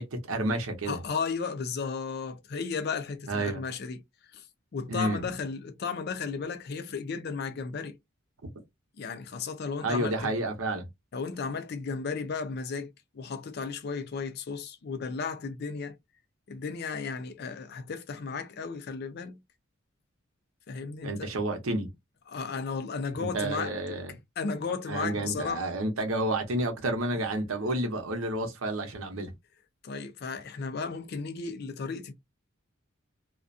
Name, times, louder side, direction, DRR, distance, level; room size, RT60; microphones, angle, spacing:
voice 1, 0.0-1.0 3.3-3.6 4.9-5.2 9.8-10.9 21.0-21.9 23.2-24.1 24.9-29.3, right 1 dB, 80° right, 0.8 m, -30 dB
voice 2, 0.9-4.0 4.3-4.4 4.7-8.0 9.0-10.3 11.1-12.9 13.1-16.0 16.5-19.4 20.7-21.3 22.3-23.7 24.4-25.6 29.8-32.1, left 5 dB, 50° left, 0.4 m, -34 dB
2.4 x 2.1 x 2.5 m
head